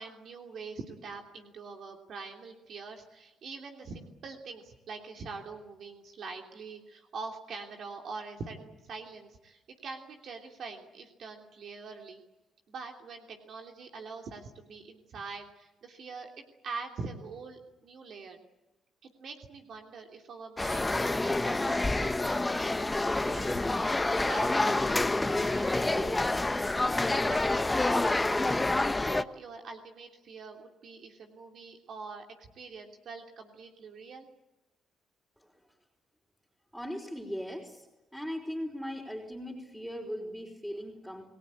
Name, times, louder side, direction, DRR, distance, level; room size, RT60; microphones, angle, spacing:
voice 1, 0.0-12.2 12.7-16.3 16.6-18.4 19.0-26.4 26.8-28.7 29.1-34.3, right 4 dB, 65° right, 3 dB, 3.0 m, -44 dB
sound 1, 20.6-29.2, left 2 dB, 20° left, 1.1 m, -28 dB
voice 2, 36.7-37.9 38.1-41.3, equal, ahead, 1 dB, 4.9 m, -38 dB
29.0 x 18.5 x 8.6 m, 1.0 s
supercardioid pair, 60°, 0 cm